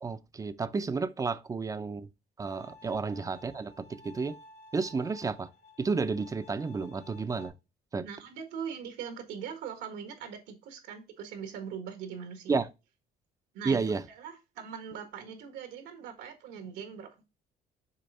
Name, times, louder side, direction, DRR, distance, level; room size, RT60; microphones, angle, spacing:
voice 1, 0.0-2.1 2.4-4.4 4.7-5.5 5.8-7.5 7.9-8.1 12.5-12.7 13.6-14.0, right 4 dB, 20° right, 0.5 m, -31 dB
Bowed string instrument, 2.5-7.5, left 1 dB, 65° left, 1.8 m, -53 dB
voice 2, 8.0-12.6 13.5-17.2, right 7 dB, 90° right, 1.6 m, -41 dB
6.6 x 3.4 x 4.1 m
cardioid pair, 110°, 17 cm